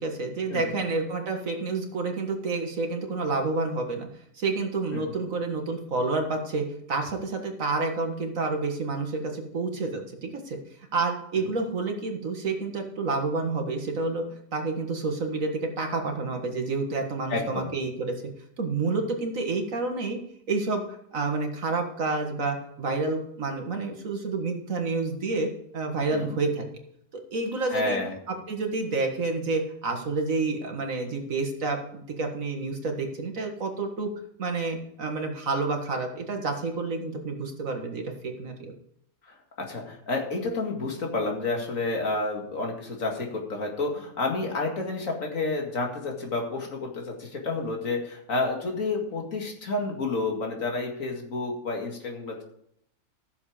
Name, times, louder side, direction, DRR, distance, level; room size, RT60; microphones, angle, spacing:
voice 1, 0.0-4.1 4.4-10.6 10.9-14.2 14.5-18.2 18.6-20.2 20.5-20.8 21.1-26.6 27.1-28.0 28.3-34.1 34.4-38.7, right 3 dB, 75° right, 3 dB, 2.1 m, -29 dB
voice 2, 17.3-17.7 26.1-26.4 27.7-28.1 39.2-52.4, left 3 dB, 75° left, 1 dB, 2.5 m, -30 dB
14.0 x 7.2 x 5.0 m, 0.72 s
omnidirectional pair, 1.4 m